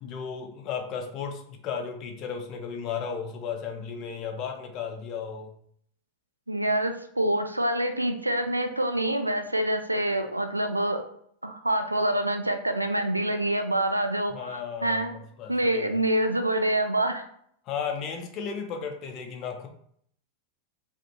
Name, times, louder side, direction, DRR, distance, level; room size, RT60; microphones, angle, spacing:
voice 1, 0.0-5.5 14.3-15.9 17.7-19.7, left 6 dB, 35° left, 3 dB, 0.5 m, -34 dB
voice 2, 6.5-11.0 11.4-15.1 15.5-17.2, right 1 dB, 85° right, 7 dB, 0.3 m, -26 dB
2.4 x 2.4 x 2.7 m, 0.65 s
figure-of-eight pair, 90°, 0 cm